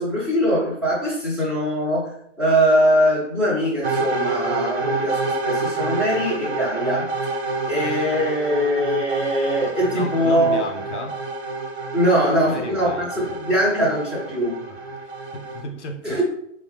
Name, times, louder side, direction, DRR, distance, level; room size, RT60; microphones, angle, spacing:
voice 1, 0.0-7.1 7.7-10.6 11.9-14.6 16.0-16.2, equal, 5° right, -10 dB, 0.5 m, -21 dB
sound 1, 3.8-15.6, right 3 dB, 60° right, 0.9 m, -28 dB
voice 2, 9.9-11.2 12.3-13.2 14.7-14.8 15.0-16.2, left 2 dB, 65° left, 3 dB, 0.6 m, -34 dB
3.4 x 2.0 x 3.0 m, 0.70 s
figure-of-eight pair, 110°, 37 cm